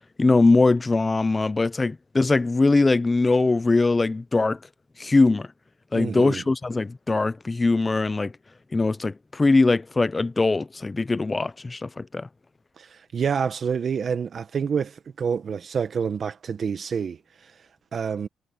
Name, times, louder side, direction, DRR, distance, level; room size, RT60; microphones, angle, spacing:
voice 1, 0.2-4.6 5.0-5.5 5.9-8.3 8.7-12.3, left 3 dB, 20° left, 0.6 m, -21 dB
voice 2, 5.9-6.4 12.8-17.5 17.9-18.3, right 6 dB, 50° right, 1.1 m, -28 dB
cardioid pair, 90°, 0 cm